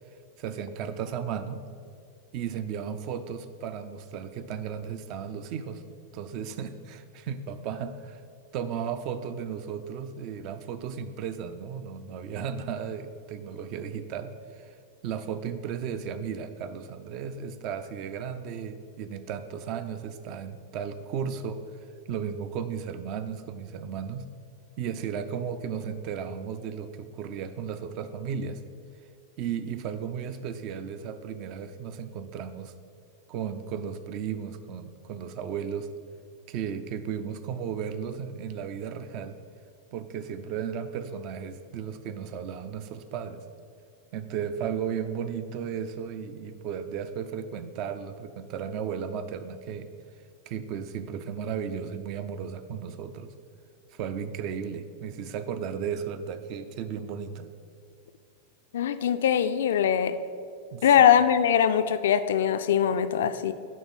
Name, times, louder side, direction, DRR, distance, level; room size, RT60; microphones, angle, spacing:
voice 1, 0.4-1.6 2.3-5.8 6.1-8.2 8.5-14.8 15.0-21.6 22.1-24.3 24.8-28.6 29.4-32.7 33.3-35.9 36.5-39.3 39.9-43.4 44.1-49.9 50.5-53.3 53.9-57.5 60.7-60.9, right 7 dB, 40° right, 11 dB, 0.5 m, -35 dB
voice 2, 58.7-60.2 60.8-63.5, left 9 dB, 60° left, 11 dB, 0.4 m, -22 dB
10.5 x 3.6 x 5.4 m, 2.3 s
figure-of-eight pair, 90°, 0 cm